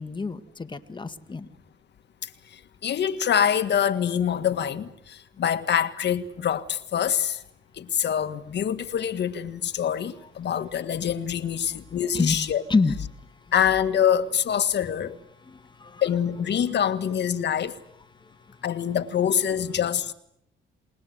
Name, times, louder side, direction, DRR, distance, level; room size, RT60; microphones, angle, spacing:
voice 1, 0.0-1.5 12.1-12.4 12.7-12.9 15.5-16.0, left 4 dB, 25° left, 1.9 m, -27 dB
voice 2, 2.8-4.9 5.4-7.4 7.8-12.6 13.5-15.2 16.0-17.7 18.6-20.1, left 9 dB, 60° left, 1.9 m, -25 dB
28.5 x 20.5 x 8.0 m
cardioid pair, 90°, 20 cm